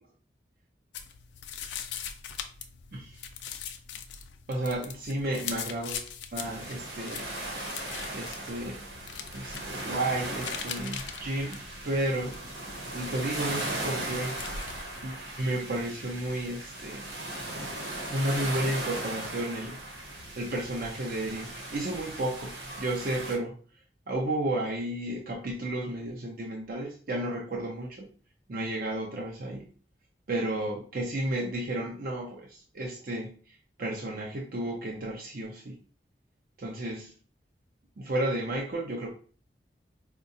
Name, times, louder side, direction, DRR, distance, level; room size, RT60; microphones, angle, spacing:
sound 1, 0.9-15.0, left 7 dB, 90° left, 0.4 m, -42 dB
voice 1, 4.5-7.3 8.1-8.8 9.3-11.6 11.8-12.4 12.9-14.4 15.0-17.1 18.1-19.8 20.4-23.5 24.1-28.1 28.5-29.7 30.3-35.8 36.6-37.1 38.0-39.1, right 1 dB, 55° right, -1 dB, 0.6 m, -32 dB
sound 2, 6.4-23.4, right 1 dB, 80° right, 1.0 m, -38 dB
4.6 x 2.2 x 2.6 m, 0.41 s
head